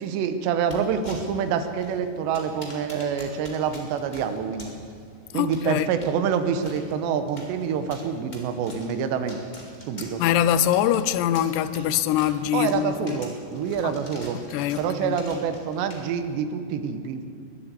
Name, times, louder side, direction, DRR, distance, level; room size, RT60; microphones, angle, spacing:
voice 1, 0.0-4.7 5.3-9.4 9.9-10.2 12.5-14.4 14.8-17.2, right 7 dB, 90° right, 3.1 m, -27 dB
sound 1, 0.6-16.4, equal, 25° left, 1.0 m, -46 dB
voice 2, 5.3-5.9 10.2-13.2 13.8-14.0 14.3-15.1, left 11 dB, 85° left, 2.7 m, -23 dB
21.5 x 8.0 x 8.0 m
omnidirectional pair, 4.9 m